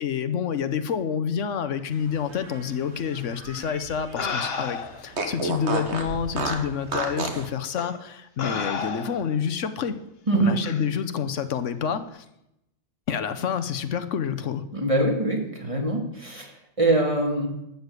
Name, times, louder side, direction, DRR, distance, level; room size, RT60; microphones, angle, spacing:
voice 1, 0.0-10.0 10.3-12.2 13.1-14.6, left 7 dB, 90° left, 10 dB, 1.2 m, -28 dB
Fart, 2.1-4.2 4.5-4.6 5.1-7.5, right 3 dB, 65° right, 1.8 m, -31 dB
sound 1, 3.5-3.6 4.2-5.1 6.0-6.1 6.9-7.1 7.8-8.0 8.4-9.4 10.6-10.8, left 5 dB, 55° left, 1.3 m, -32 dB
voice 2, 10.3-10.6 14.7-17.5, right 2 dB, 30° right, 2 dB, 2.2 m, -24 dB
12.5 x 6.9 x 8.2 m, 0.83 s
omnidirectional pair, 1.2 m